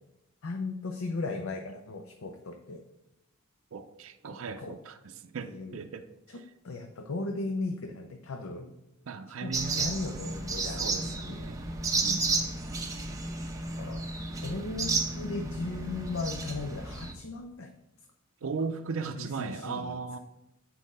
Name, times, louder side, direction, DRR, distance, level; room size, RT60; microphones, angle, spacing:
voice 1, 0.4-2.8 4.3-4.8 5.4-5.8 6.3-8.7 9.4-11.4 13.8-14.0 14.4-17.7 18.4-18.7 19.2-20.2, left 3 dB, 75° left, 4 dB, 0.6 m, -37 dB
voice 2, 3.7-5.0 5.2-6.1 9.1-10.0 10.8-11.6 11.9-12.4 18.4-20.2, right 5 dB, 70° right, 7 dB, 0.5 m, -37 dB
sound 1, 9.5-17.1, right 3 dB, 15° right, 0.9 m, -32 dB
8.2 x 4.3 x 5.4 m, 0.90 s
head